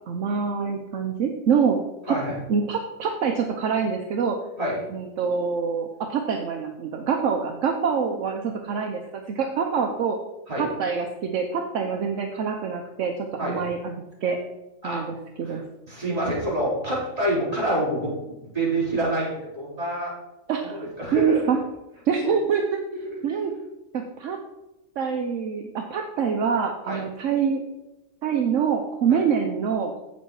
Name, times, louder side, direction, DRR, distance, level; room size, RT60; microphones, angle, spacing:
voice 1, 0.1-1.8 2.1-2.2 2.5-4.4 4.9-10.2 10.6-13.9 14.2-14.4 14.8-15.6 20.5-20.8 21.1-21.6 22.1-22.6 23.2-23.5 23.9-24.4 25.0-27.6 28.2-29.9, right 6 dB, 70° right, 3 dB, 1.1 m, -25 dB
voice 2, 15.9-20.1 20.6-21.4 22.2-22.3 23.0-23.1 26.9-27.0 29.1-29.2, right 1 dB, 25° right, -7 dB, 3.8 m, -27 dB
8.2 x 7.2 x 4.7 m, 0.98 s
omnidirectional pair, 1.4 m